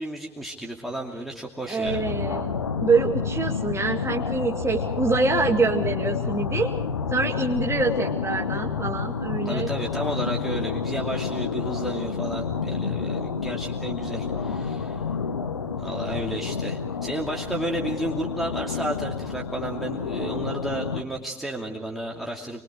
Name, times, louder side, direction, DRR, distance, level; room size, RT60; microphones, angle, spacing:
voice 1, 0.0-2.0 9.4-15.1 15.8-22.6, right 1 dB, ahead, 0 dB, 2.6 m, -32 dB
voice 2, 1.7-6.7 7.1-9.7, right 4 dB, 20° right, 0 dB, 2.0 m, -25 dB
sound 1, 1.8-21.0, left 6 dB, 80° left, 1.0 m, -29 dB
27.5 x 22.5 x 5.0 m, 0.80 s
figure-of-eight pair, 60°, 14 cm